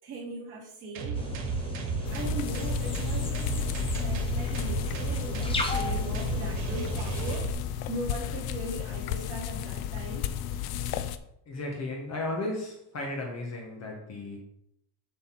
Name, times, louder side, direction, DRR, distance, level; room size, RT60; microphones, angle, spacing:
voice 1, 0.0-1.2 2.1-7.5 7.9-10.3, right 1 dB, 30° right, -7 dB, 3.5 m, -39 dB
sound 1, 0.9-7.5, right 6 dB, 85° right, 1.8 m, -34 dB
sound 2, 1.1-7.4, left 3 dB, 10° left, 0.6 m, -36 dB
sound 3, 2.0-11.2, left 11 dB, 55° left, 0.5 m, -33 dB
voice 2, 11.4-14.4, left 2 dB, 35° left, 0 dB, 1.4 m, -34 dB
8.0 x 4.0 x 6.1 m, 0.76 s
cardioid pair, 180°, 46 cm